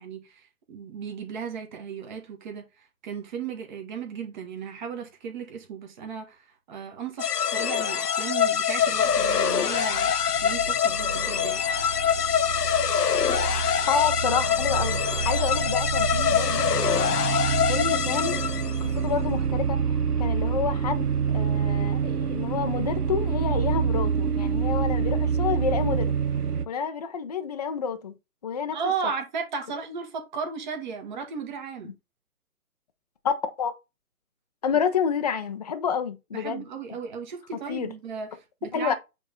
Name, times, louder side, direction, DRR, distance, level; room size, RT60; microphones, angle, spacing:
voice 1, 0.0-10.1 10.4-11.6 28.7-31.9 36.3-38.9, right 6 dB, 30° right, 1.6 m, -35 dB
sound 1, 7.2-18.9, left 8 dB, 85° left, 0.7 m, -25 dB
sound 2, 8.8-26.7, right 6 dB, 85° right, 0.9 m, -28 dB
voice 2, 13.9-17.4 17.7-18.4 18.8-26.1 26.7-28.1 28.4-28.8 33.2-33.7 34.6-36.6 37.7-37.9 38.7-38.9, left 7 dB, 25° left, 0.6 m, -29 dB
8.4 x 3.5 x 3.9 m
figure-of-eight pair, 140°, 45 cm